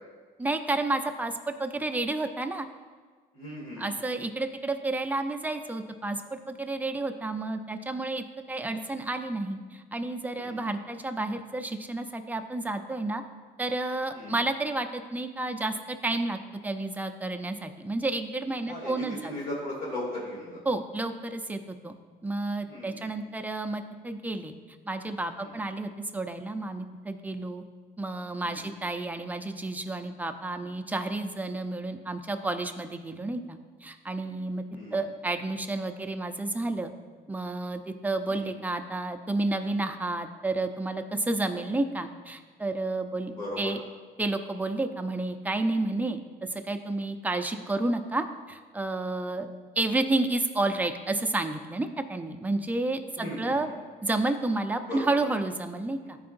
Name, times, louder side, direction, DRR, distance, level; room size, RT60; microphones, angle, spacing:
voice 1, 0.4-2.7 3.8-13.2 13.6-19.3 20.7-22.0 22.2-24.5 24.9-27.6 28.0-34.6 34.9-36.9 37.3-43.8 44.2-49.5 49.8-53.7 54.0-56.2, right 2 dB, 10° right, 6 dB, 0.5 m, -31 dB
voice 2, 3.3-3.9 10.4-10.6 14.1-14.4 18.6-20.6 22.7-23.1 25.4-25.6 28.4-28.7 34.7-35.0 38.3-38.5 41.6-41.7 43.3-43.7 53.2-53.8 54.9-55.1 56.0-56.1, left 1 dB, 50° left, -5 dB, 2.2 m, -38 dB
13.0 x 4.8 x 2.6 m, 1.5 s
cardioid pair, 110°, 17 cm